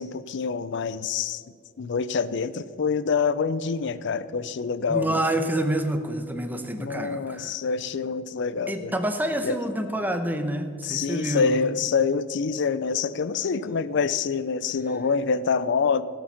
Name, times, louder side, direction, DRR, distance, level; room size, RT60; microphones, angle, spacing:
voice 1, 0.0-1.4 1.8-5.2 6.8-9.0 9.4-9.6 10.8-16.0, left 5 dB, 65° left, 16 dB, 0.5 m, -26 dB
voice 2, 4.9-7.5 8.7-11.6, right 1 dB, 10° right, 7 dB, 0.8 m, -27 dB
17.0 x 6.0 x 5.7 m, 2.1 s
head